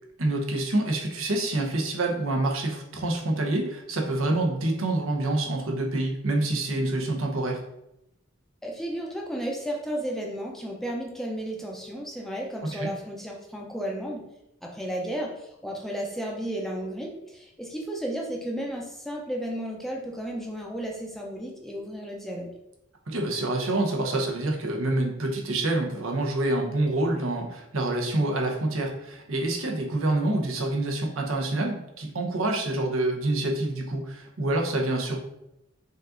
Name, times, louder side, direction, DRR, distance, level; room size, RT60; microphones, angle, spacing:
voice 1, 0.2-7.6 12.7-12.9 23.1-35.2, right 2 dB, 80° right, 2 dB, 0.9 m, -27 dB
voice 2, 8.6-14.2 14.6-22.5, right 1 dB, ahead, -1 dB, 0.6 m, -33 dB
5.3 x 2.6 x 3.8 m, 0.85 s
head